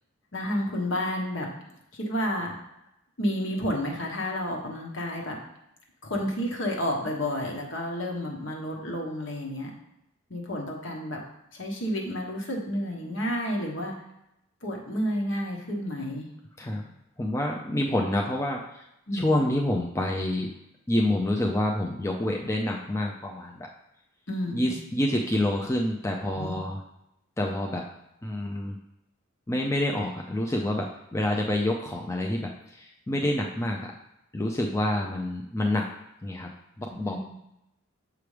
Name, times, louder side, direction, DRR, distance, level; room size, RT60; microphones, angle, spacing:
voice 1, 0.3-1.5 1.9-2.5 3.2-5.4 6.0-9.7 10.3-11.2 11.5-14.0 14.6-16.3 19.1-19.4 24.3-24.8 26.3-26.6 37.1-37.2, equal, 60° left, -1 dB, 1.3 m, -30 dB
voice 2, 16.6-18.9 19.1-20.5 20.9-23.7 24.5-26.8 27.4-27.8 28.2-28.8 29.5-33.8 34.3-35.9 36.2-36.5 36.8-37.2, left 1 dB, 15° left, 0 dB, 0.4 m, -27 dB
6.9 x 4.8 x 3.3 m, 0.83 s
head